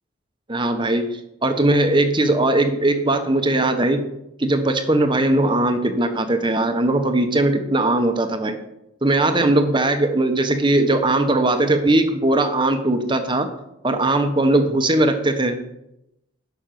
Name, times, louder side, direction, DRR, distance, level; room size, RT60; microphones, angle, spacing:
voice 1, 0.5-4.1 4.4-8.6 9.0-13.5 13.8-15.6, right 2 dB, 25° right, 7 dB, 1.2 m, -19 dB
11.5 x 6.4 x 9.3 m, 0.85 s
head